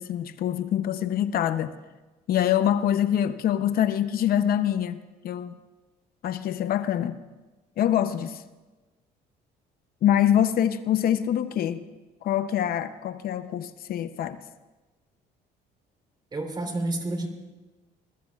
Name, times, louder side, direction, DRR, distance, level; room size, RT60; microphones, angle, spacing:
voice 1, 0.0-1.7 2.3-5.6 6.2-7.2 7.8-8.4 10.0-11.8 12.2-14.4, left 10 dB, 60° left, 0.7 m, -25 dB
voice 2, 16.3-17.3, right 2 dB, 25° right, 3.3 m, -29 dB
27.5 x 20.5 x 2.4 m
cardioid pair, 110°, 17 cm